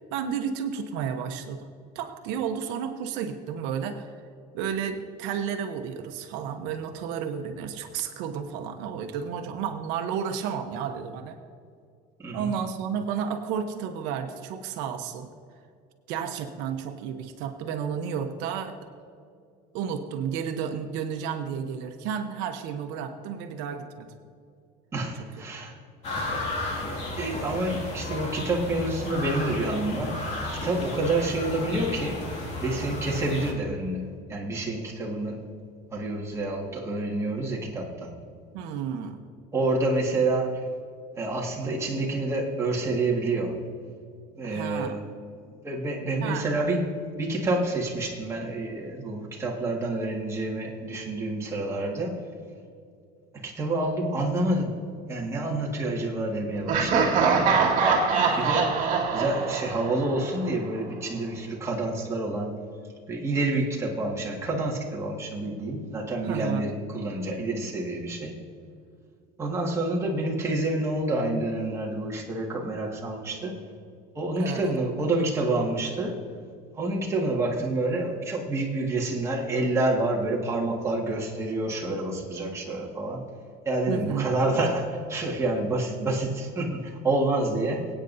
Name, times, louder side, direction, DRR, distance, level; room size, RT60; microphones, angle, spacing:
voice 1, 0.1-4.2 4.5-11.4 12.3-15.3 16.1-18.8 19.7-24.1 38.5-39.2 44.4-45.0 46.2-46.5 58.1-58.6 66.2-66.7 74.4-74.7 83.9-84.3, right 7 dB, 70° right, 6 dB, 1.0 m, -32 dB
voice 2, 12.2-12.5 24.9-25.7 27.2-30.2 30.5-32.2 32.6-35.4 35.9-38.1 39.5-40.7 41.1-43.6 44.3-45.0 45.6-46.9 47.2-52.2 53.3-54.8 55.1-57.6 58.4-58.7 59.1-62.6 63.1-68.4 69.4-73.6 74.1-76.2 76.7-83.2 83.6-87.9, right 2 dB, 15° right, -3 dB, 1.8 m, -28 dB
sound 1, 26.0-33.5, left 2 dB, 35° left, 2.3 m, -33 dB
Laughter, 56.7-60.5, right 5 dB, 45° right, 1.9 m, -23 dB
23.0 x 9.0 x 2.7 m, 2.3 s
cardioid pair, 155°, 19 cm